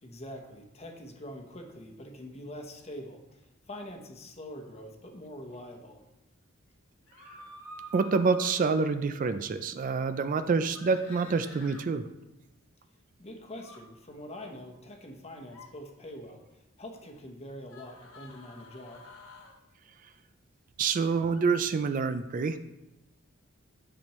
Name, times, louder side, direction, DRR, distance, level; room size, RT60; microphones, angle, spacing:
voice 1, 0.0-6.0 13.2-16.4 16.8-19.1, left 1 dB, 30° left, 3 dB, 1.0 m, -44 dB
sound 1, 7.1-8.6 10.7-11.8 13.5-13.8 15.4-15.7 17.7-19.6 21.3-21.4, equal, 85° left, 1.2 m, -48 dB
voice 2, 7.9-12.1 20.8-22.6, right 4 dB, 40° right, 10 dB, 0.3 m, -27 dB
10.0 x 6.0 x 3.1 m, 0.93 s
head